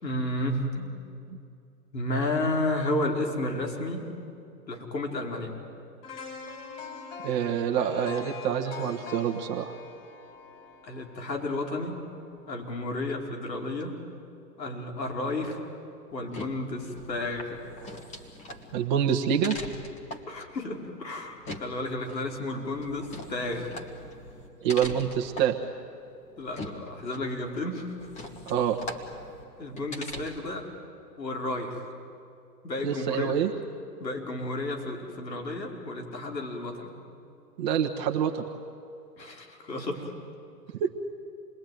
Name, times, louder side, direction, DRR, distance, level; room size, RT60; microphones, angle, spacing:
voice 1, 0.0-1.0 1.9-4.1 4.7-5.6 10.8-12.1 12.5-13.9 14.6-15.6 16.1-17.6 20.3-23.7 26.4-27.9 29.6-30.6 31.2-31.8 32.6-33.3 34.0-36.9 39.2-40.1, left 2 dB, 80° left, 1 dB, 5.1 m, -32 dB
sound 1, 6.0-12.0 12.4-12.6, left 4 dB, 35° left, 6.3 m, -43 dB
voice 2, 7.2-9.7 18.7-19.5 24.6-25.5 28.5-28.8 32.8-33.5 37.6-38.4 40.8-40.9, right 8 dB, 25° right, 2 dB, 1.2 m, -26 dB
sound 2, 16.1-30.6, left 1 dB, 15° left, 1.6 m, -42 dB
28.0 x 20.5 x 9.3 m, 2.6 s
hypercardioid pair, 140°, 50 cm